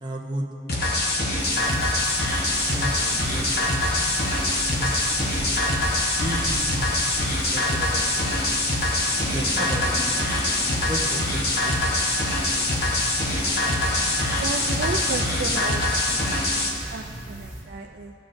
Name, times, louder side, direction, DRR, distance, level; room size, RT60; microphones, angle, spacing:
voice 1, 0.0-0.5 1.5-2.0 2.6-3.6 4.7-5.6 6.2-8.3 9.3-10.1 10.9-12.9 14.9-15.0, right 1 dB, 25° right, -1 dB, 0.9 m, -34 dB
sound 1, 0.7-16.7, left 1 dB, 60° left, 1.1 m, -24 dB
sound 2, 1.4-17.6, right 1 dB, 20° left, 1.7 m, -38 dB
voice 2, 14.3-15.8 16.1-16.2 16.6-18.1, right 4 dB, 60° right, 3 dB, 0.4 m, -33 dB
16.5 x 5.7 x 2.6 m, 2.6 s
head